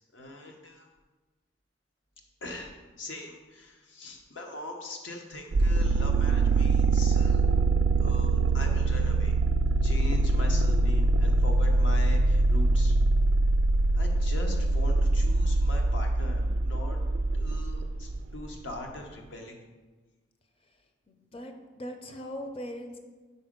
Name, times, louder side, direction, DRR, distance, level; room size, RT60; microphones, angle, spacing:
voice 1, 0.1-0.9 2.4-2.7 3.0-7.4 8.0-9.3 9.8-13.0 13.9-17.0 17.3-19.6, left 1 dB, 80° left, 2 dB, 0.9 m, -41 dB
sound 1, 5.5-18.2, right 2 dB, 80° right, 0.3 m, -23 dB
voice 2, 21.1-23.0, equal, 30° left, 5 dB, 0.5 m, -40 dB
5.0 x 4.2 x 5.1 m, 1.3 s
head